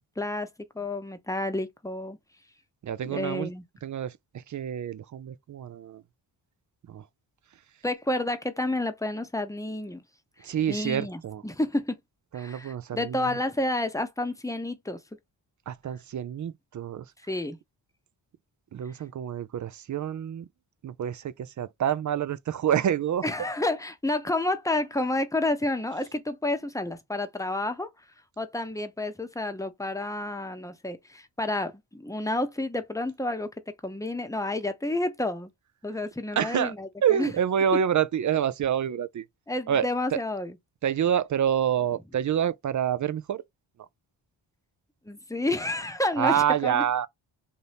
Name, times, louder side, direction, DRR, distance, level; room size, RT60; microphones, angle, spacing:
voice 1, 0.2-0.5 0.7-2.2 3.0-3.6 7.8-10.0 10.4-12.0 12.3-15.0 17.3-17.6 23.2-27.9 28.4-33.5 33.8-35.5 35.8-37.3 39.5-40.6 45.1-46.8, left 2 dB, 5° left, 0.8 m, -30 dB
voice 2, 2.8-3.5 3.8-6.0 6.9-7.0 10.4-11.4 12.3-13.4 15.7-17.1 18.7-20.5 20.8-23.3 36.4-36.7 37.0-39.2 39.7-40.2 40.8-43.4 46.2-47.1, right 9 dB, 40° right, 0.4 m, -27 dB
2.8 x 2.6 x 3.3 m
cardioid pair, 45°, 50 cm